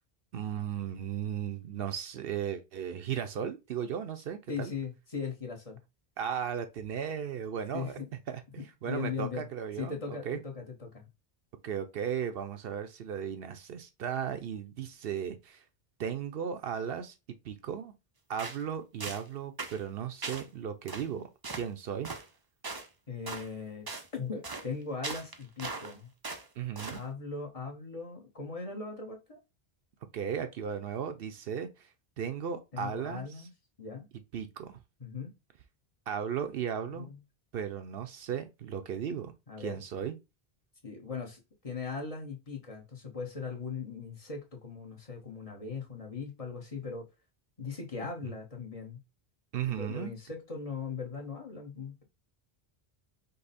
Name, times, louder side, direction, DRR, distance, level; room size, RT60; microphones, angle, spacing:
voice 1, 0.3-4.7 6.2-8.0 8.3-8.4 8.8-10.4 11.6-15.6 16.0-17.1 17.4-17.9 18.3-22.1 26.6-27.0 30.1-31.9 32.2-33.5 34.3-34.8 36.1-37.1 37.5-39.3 39.6-40.2 49.5-50.1, right 8 dB, 70° right, 0.8 m, -36 dB
voice 2, 4.5-5.8 7.7-8.1 8.6-9.5 9.8-11.0 23.1-23.8 24.1-26.1 26.9-29.4 32.7-33.5 33.8-34.1 35.0-35.3 36.9-37.2 39.5-39.8 40.8-47.1 47.6-49.0 49.7-52.0, left 5 dB, 35° left, 1.0 m, -39 dB
sound 1, 18.4-18.6 19.0-19.3 19.6-19.8 20.2-20.5 20.9-21.1 21.4-21.7 22.0-22.3 22.6-22.9 23.3-23.5 23.9-24.1 24.4-24.7 25.0-25.9 26.2-26.5 26.8-27.0, right 3 dB, 30° right, 0.5 m, -39 dB
5.4 x 2.1 x 4.1 m
omnidirectional pair, 1.1 m